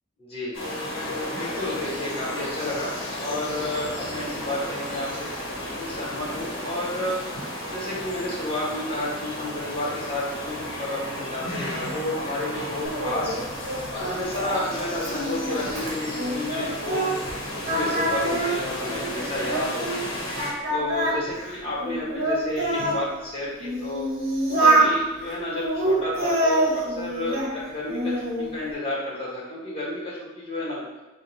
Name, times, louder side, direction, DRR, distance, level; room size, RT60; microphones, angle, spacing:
voice 1, 0.2-0.6 1.3-13.4 13.9-17.1 17.5-20.2 20.7-24.1 24.5-30.8, left 1 dB, 30° left, -7 dB, 1.3 m, -31 dB
sound 1, 0.5-20.5, left 1 dB, 85° left, 0.9 m, -33 dB
Singing, 12.8-17.4 17.6-20.0 20.4-23.0 23.6-24.9 25.5-27.5 27.9-28.5, right 2 dB, 55° right, 0.9 m, -26 dB
4.9 x 2.3 x 2.8 m, 1.1 s
head